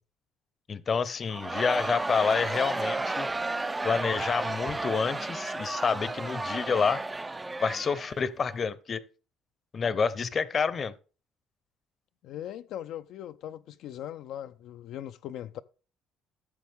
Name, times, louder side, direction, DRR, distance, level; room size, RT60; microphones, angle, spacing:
voice 1, 0.7-3.3 3.8-7.0 7.6-9.0 9.7-10.9, left 5 dB, 35° left, 0.7 m, -28 dB
Crowd, 1.3-8.6, right 2 dB, 15° right, 0.4 m, -33 dB
voice 2, 12.2-15.6, left 11 dB, 70° left, 0.4 m, -40 dB
14.0 x 7.0 x 3.5 m
cardioid pair, 125°, 0 cm